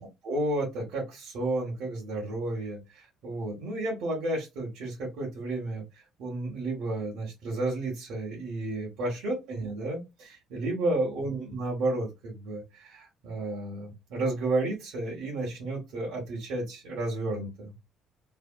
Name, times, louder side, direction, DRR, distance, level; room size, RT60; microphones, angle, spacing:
voice 1, 0.2-5.8 6.2-17.7, right 2 dB, 70° right, -5 dB, 1.4 m, -32 dB
3.3 x 2.3 x 2.2 m, 0.22 s
cardioid pair, 130°, 0 cm